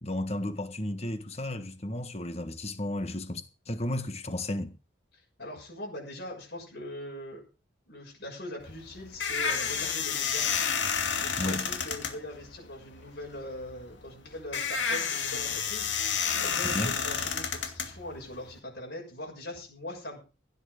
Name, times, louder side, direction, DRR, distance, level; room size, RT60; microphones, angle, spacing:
voice 1, 0.0-4.7 11.4-11.7 16.6-17.0, left 1 dB, 35° left, 1.6 m, -33 dB
voice 2, 5.1-7.4 7.9-10.5 11.2-20.2, left 1 dB, 60° left, 6.6 m, -41 dB
sound 1, 8.6-18.6, left 6 dB, 75° left, 2.5 m, -30 dB
16.0 x 9.7 x 5.1 m
head